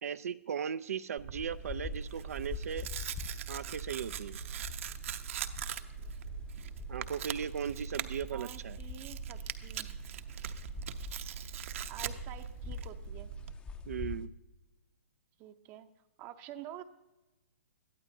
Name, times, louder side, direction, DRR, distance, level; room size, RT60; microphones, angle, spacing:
voice 1, 0.0-2.9 3.5-4.4 6.9-8.8 13.9-14.3, right 7 dB, 75° right, 12 dB, 0.4 m, -37 dB
Tearing, 1.2-13.5, right 8 dB, 60° right, 0.8 m, -41 dB
sound 1, 1.3-14.3, left 5 dB, 15° left, 0.6 m, -46 dB
voice 2, 8.3-10.0 11.9-13.3 15.4-15.9 16.2-16.8, right 11 dB, 30° right, 8 dB, 0.6 m, -48 dB
21.5 x 13.5 x 2.7 m, 1.1 s
hypercardioid pair, 140°, 8 cm